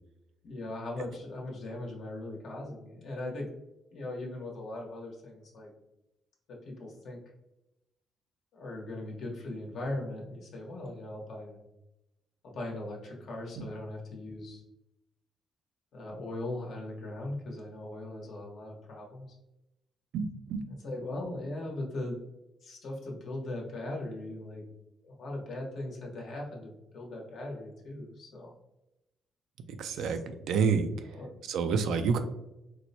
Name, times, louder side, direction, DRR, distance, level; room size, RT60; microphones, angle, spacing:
voice 1, 0.4-3.5 3.9-5.7 6.5-7.2 8.5-11.6 12.4-14.6 15.9-19.3 20.7-22.2 22.6-24.6 25.0-28.5 29.9-30.2 31.0-31.4, left 1 dB, 70° left, -1 dB, 1.1 m, -39 dB
voice 2, 20.1-20.6 29.7-30.2 30.5-30.9 31.5-32.2, right 5 dB, 80° right, 8 dB, 0.4 m, -28 dB
4.3 x 2.1 x 2.7 m, 0.92 s
cardioid pair, 90°, 0 cm